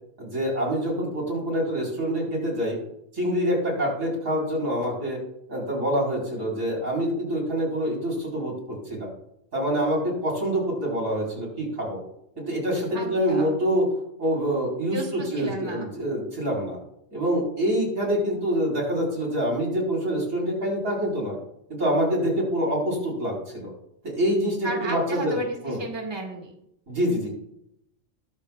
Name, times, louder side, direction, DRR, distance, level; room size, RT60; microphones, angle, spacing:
voice 1, 0.2-2.8 3.1-5.2 5.5-9.1 9.5-12.0 12.4-13.8 14.2-15.0 15.3-16.8 17.1-21.4 21.7-23.7 24.0-25.4 25.6-25.8 26.9-27.3, equal, 75° right, -3 dB, 4.8 m, -26 dB
voice 2, 12.9-13.5 14.9-15.9 24.6-26.5, right 1 dB, 20° right, 1 dB, 1.9 m, -33 dB
21.0 x 7.2 x 2.4 m, 0.77 s
omnidirectional pair, 1.4 m